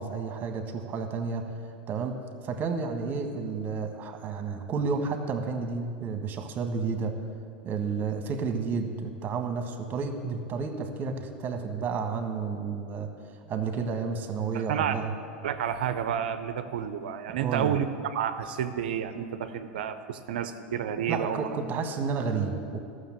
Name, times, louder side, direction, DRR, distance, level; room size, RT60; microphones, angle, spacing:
voice 1, 0.0-1.4 1.9-2.2 2.4-7.1 7.6-13.1 13.5-15.1 17.3-17.7 21.1-22.8, right 5 dB, 35° right, 6 dB, 1.4 m, -31 dB
voice 2, 14.5-14.9 15.4-21.5, right 9 dB, 70° right, 10 dB, 0.6 m, -30 dB
13.5 x 6.5 x 7.5 m, 2.3 s
hypercardioid pair, 90°, 5 cm